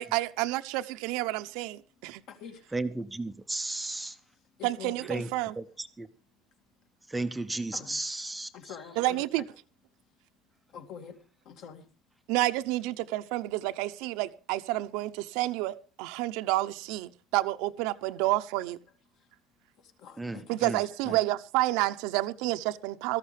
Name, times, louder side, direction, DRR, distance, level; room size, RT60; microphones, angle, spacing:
voice 1, 0.0-2.2 4.6-5.5 9.0-9.4 12.3-18.8 20.5-23.2, right 17 dB, 80° right, 0.8 m, -29 dB
voice 2, 2.0-2.7 4.2-5.1 6.8-6.9 7.7-8.0 8.5-9.5 10.7-11.9 19.1-19.3 19.8-21.2, left 7 dB, 55° left, 2.2 m, -47 dB
voice 3, 2.7-4.2 5.1-5.3 5.6-6.1 7.1-8.5 20.2-20.8 21.1-21.2, right 2 dB, 5° right, 0.6 m, -34 dB
18.5 x 14.0 x 3.4 m
cardioid pair, 165°, 0 cm